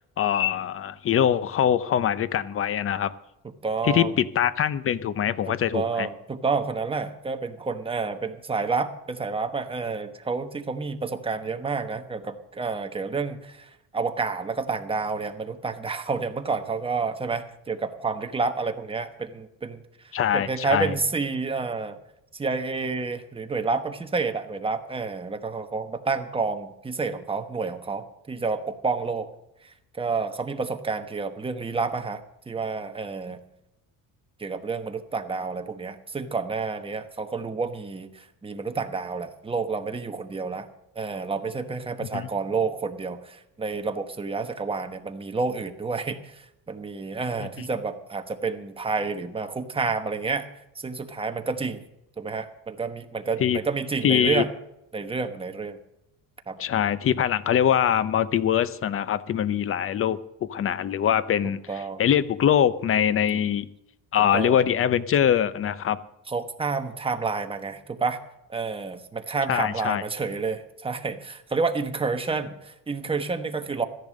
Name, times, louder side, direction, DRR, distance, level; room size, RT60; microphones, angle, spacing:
voice 1, 0.2-3.1 3.8-6.1 20.1-20.9 42.0-42.3 53.4-53.6 54.0-54.4 56.6-63.7 64.1-66.0 69.5-70.0, left 9 dB, 40° left, 16 dB, 0.7 m, -23 dB
voice 2, 3.6-4.2 5.5-19.8 20.3-22.0 22.3-29.3 29.6-33.4 34.4-40.7 40.9-50.5 50.7-51.8 52.2-54.5 54.9-55.8 56.5-56.6 61.7-62.0 64.3-64.6 66.3-68.2 68.5-73.8, right 4 dB, 15° right, 6 dB, 1.1 m, -29 dB
14.0 x 10.5 x 6.4 m, 0.85 s
cardioid pair, 120°, 34 cm